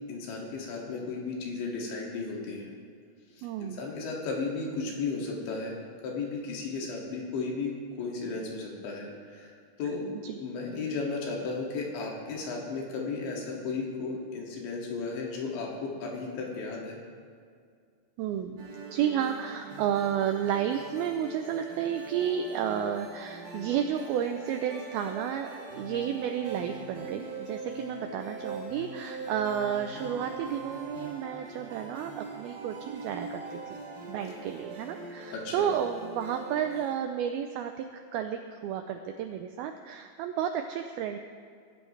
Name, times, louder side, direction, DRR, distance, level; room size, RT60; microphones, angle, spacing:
voice 1, 0.1-2.7 3.6-5.7 6.0-10.1 10.4-17.0 35.3-35.7, left 4 dB, 85° left, -2 dB, 4.6 m, -34 dB
voice 2, 3.4-3.8 10.2-10.4 18.2-33.8 34.1-37.9 38.1-41.2, right 9 dB, 85° right, 6 dB, 2.1 m, -32 dB
sound 1, 18.6-37.0, right 3 dB, 50° right, 4.3 m, -42 dB
22.5 x 13.0 x 3.3 m, 2.1 s
omnidirectional pair, 5.1 m